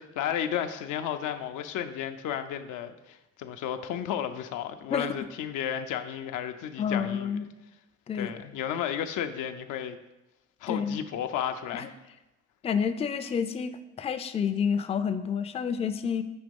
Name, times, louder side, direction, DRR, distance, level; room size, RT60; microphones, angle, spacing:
voice 1, 0.0-7.3 8.1-10.0 10.6-11.9, left 9 dB, 85° left, 8 dB, 0.5 m, -33 dB
voice 2, 6.8-7.5 8.1-8.3 10.7-11.0 11.7-11.9 12.6-16.2, left 7 dB, 20° left, 9 dB, 0.3 m, -29 dB
6.1 x 3.0 x 5.2 m, 0.99 s
cardioid pair, 90°, 30 cm